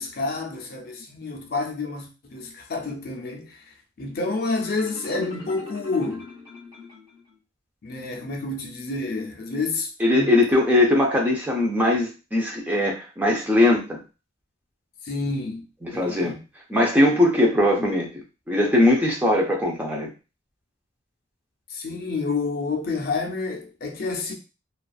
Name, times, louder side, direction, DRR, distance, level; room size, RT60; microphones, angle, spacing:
voice 1, 0.0-3.6 4.0-6.3 7.8-10.4 15.1-15.7 15.9-16.4 21.7-24.3, left 3 dB, 50° left, 0.5 m, -29 dB
Marimba xylophone, 4.6-7.4, left 2 dB, 30° right, 1.3 m, -42 dB
voice 2, 10.0-14.0 15.8-16.4 16.7-18.1 18.5-20.1, left 1 dB, 10° right, 0.5 m, -20 dB
2.4 x 2.3 x 2.3 m
head